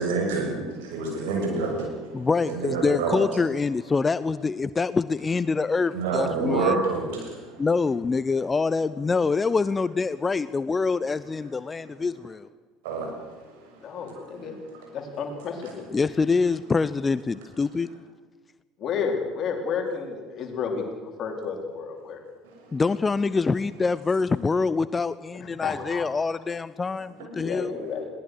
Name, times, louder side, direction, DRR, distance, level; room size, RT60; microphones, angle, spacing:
voice 1, 0.0-3.2 5.9-7.7 11.7-12.0 12.8-15.0 15.6-15.7 22.4-22.8 27.2-27.5 27.8-27.9, right 3 dB, 70° right, 1 dB, 6.6 m, -29 dB
voice 2, 2.1-6.8 7.6-12.5 15.9-17.9 22.7-27.7, left 4 dB, 25° left, 16 dB, 0.6 m, -25 dB
voice 3, 13.8-14.6 14.9-15.9 18.8-22.2 25.3-26.0 27.3-28.1, left 5 dB, 45° left, 2 dB, 4.6 m, -31 dB
21.0 x 18.5 x 6.6 m, 1.4 s
figure-of-eight pair, 65°, 0 cm